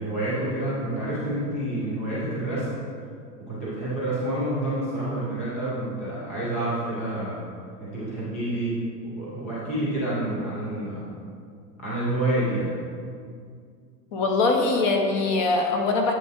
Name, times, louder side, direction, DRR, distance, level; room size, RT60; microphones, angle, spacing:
voice 1, 0.0-2.7 3.5-7.4 7.8-8.8 9.0-11.1 11.8-12.7, right 1 dB, 10° left, -9 dB, 0.3 m, -28 dB
voice 2, 14.1-16.1, left 3 dB, 30° left, 2 dB, 0.7 m, -22 dB
9.0 x 7.4 x 2.4 m, 2.2 s
hypercardioid pair, 150°, 48 cm